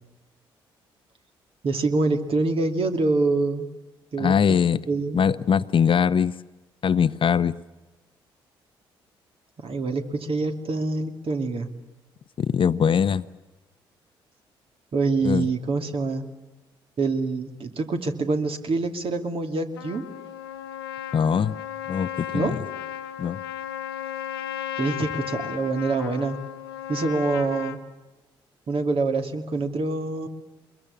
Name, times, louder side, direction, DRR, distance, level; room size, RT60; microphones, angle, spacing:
voice 1, 1.6-3.7 4.1-5.2 9.6-11.7 14.9-16.3 17.0-20.0 22.3-22.6 24.8-26.4 26.9-27.8 28.7-30.3, right 3 dB, 50° right, 6 dB, 2.6 m, -25 dB
voice 2, 4.2-4.8 5.1-6.3 6.8-7.5 12.4-13.3 15.2-15.5 21.1-21.5 21.9-22.6 23.2-23.4, left 7 dB, 45° left, 15 dB, 0.8 m, -21 dB
Trumpet, 19.8-27.8, left 10 dB, 85° left, 0.9 m, -35 dB
24.0 x 22.0 x 8.6 m, 1.1 s
hypercardioid pair, 45°, 12 cm